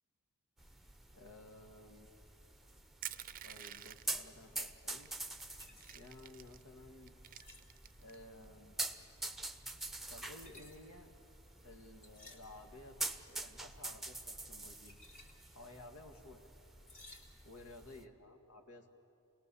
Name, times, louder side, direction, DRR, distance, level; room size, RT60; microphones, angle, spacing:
sound 1, 0.6-18.0, right 2 dB, ahead, 0.8 m, -47 dB
voice 1, 1.1-2.1 3.4-5.1 5.9-7.1 8.0-8.8 10.1-11.1 11.6-13.0 13.3-15.0 15.5-16.4 17.5-18.9, left 2 dB, 80° left, 4 dB, 1.9 m, -55 dB
Crushing, 3.0-4.2 5.0-5.1 5.4-6.6 7.1-8.2, right 11 dB, 40° right, 0.5 m, -48 dB
sound 2, 5.2-17.9, left 1 dB, 35° left, 2.6 m, -61 dB
29.0 x 19.0 x 7.0 m, 2.6 s
head